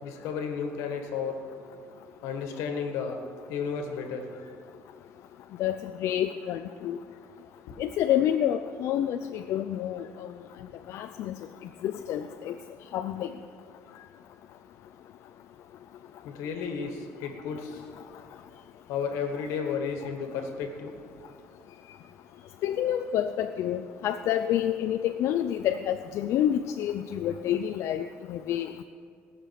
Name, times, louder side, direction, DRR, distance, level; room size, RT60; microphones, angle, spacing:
voice 1, 0.0-1.5 2.2-3.2 3.5-4.3 7.7-7.8 16.2-17.8 18.9-21.0, left 6 dB, 90° left, 5 dB, 1.6 m, -33 dB
voice 2, 5.6-7.0 7.8-10.3 10.9-11.4 11.8-12.6 12.9-13.3 22.6-28.8, left 11 dB, 70° left, 8 dB, 0.5 m, -28 dB
18.5 x 6.7 x 5.9 m, 2.2 s
cardioid pair, 120°, 5 cm